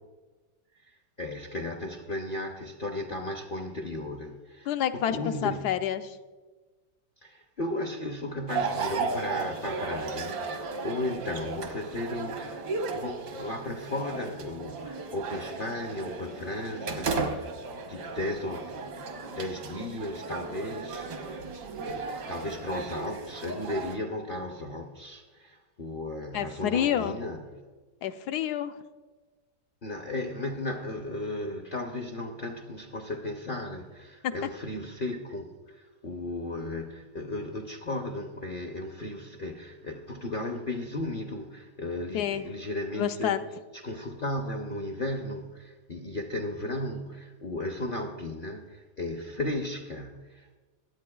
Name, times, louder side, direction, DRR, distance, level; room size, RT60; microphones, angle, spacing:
voice 1, 1.2-5.8 7.2-21.5 21.7-27.6 29.8-43.4 43.7-50.6, left 1 dB, 50° left, 3 dB, 0.6 m, -35 dB
voice 2, 4.7-6.2 26.3-27.2 28.0-28.7 42.1-42.4 42.9-43.4, left 10 dB, 75° left, 8 dB, 1.1 m, -28 dB
sound 1, 8.5-24.0, right 4 dB, 75° right, 1.7 m, -35 dB
23.5 x 8.4 x 2.3 m, 1.3 s
omnidirectional pair, 1.8 m